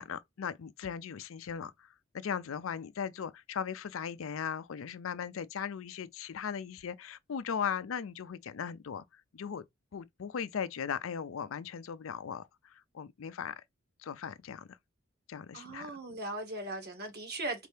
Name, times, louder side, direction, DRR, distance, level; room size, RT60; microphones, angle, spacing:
voice 1, 0.0-1.9 2.1-9.6 9.9-13.6 14.0-14.8 15.3-16.0, left 7 dB, 70° left, 0.4 m, -38 dB
voice 2, 15.5-17.7, right 2 dB, 50° right, 1.5 m, -38 dB
4.3 x 2.7 x 3.3 m
head